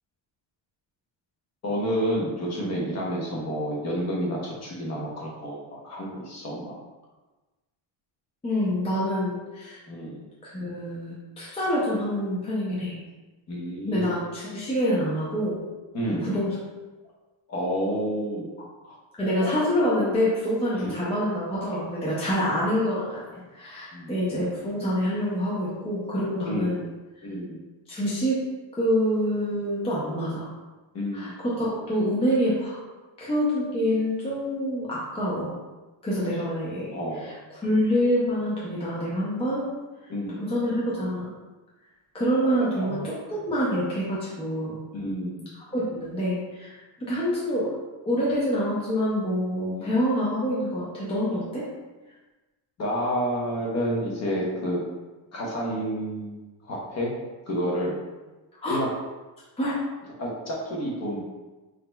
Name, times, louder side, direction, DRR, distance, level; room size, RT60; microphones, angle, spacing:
voice 1, 1.6-6.7 9.9-10.2 13.5-14.1 15.9-16.3 17.5-18.5 18.8-18.9 19.4-19.5 20.7-20.9 23.9-24.1 26.4-26.9 27.2-27.6 30.9-31.3 36.9-37.3 40.1-40.4 42.8-43.0 44.9-45.5 49.8-49.9 52.8-54.8 55.3-57.1 57.5-58.0 58.7-58.9 60.2-61.2, equal, 35° left, -4 dB, 1.0 m, -29 dB
voice 2, 8.4-9.8 10.4-12.9 13.9-15.6 16.2-16.6 19.2-26.9 27.9-28.4 28.7-30.5 31.1-32.8 33.2-35.5 36.0-36.9 37.2-37.3 37.6-39.7 40.4-41.3 42.1-44.8 45.7-47.7 48.1-51.7 58.5-58.8 59.6-59.8, equal, 15° left, -7 dB, 0.5 m, -26 dB
4.2 x 3.8 x 2.2 m, 1.2 s
cardioid pair, 165°, 45 cm